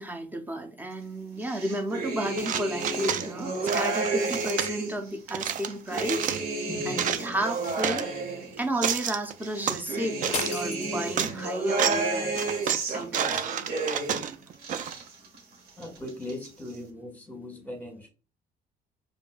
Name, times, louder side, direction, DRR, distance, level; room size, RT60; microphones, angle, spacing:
voice 1, 0.0-6.3 6.8-8.1 8.6-13.5, right 1 dB, 10° right, 0.7 m, -32 dB
sound 1, 1.4-5.0 5.5-8.9 9.4-14.3 14.5-15.4 15.7-16.5, right 2 dB, 70° right, 1.3 m, -32 dB
sound 2, 2.4-3.3 3.7-4.7 5.3-6.4 6.8-8.0 8.6-9.8 10.2-10.6 11.0-11.3 11.7-12.1 12.3-15.0, right 9 dB, 50° right, 0.4 m, -30 dB
voice 2, 6.7-7.0 15.8-18.1, left 1 dB, 10° left, 1.5 m, -39 dB
sound 3, 10.3-11.6, left 8 dB, 40° left, 0.4 m, -36 dB
5.1 x 2.6 x 2.3 m
cardioid pair, 110°, 17 cm